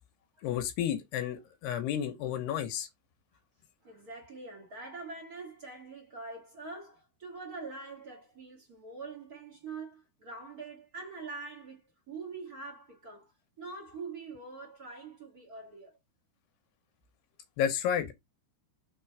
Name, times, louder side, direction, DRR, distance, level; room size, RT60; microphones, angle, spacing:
voice 1, 0.4-2.9 17.6-18.1, left 9 dB, 75° left, 2.9 m, -31 dB
voice 2, 3.8-11.8 12.1-16.0, right 4 dB, 80° right, 0.8 m, -44 dB
6.2 x 3.8 x 4.6 m
omnidirectional pair, 5.0 m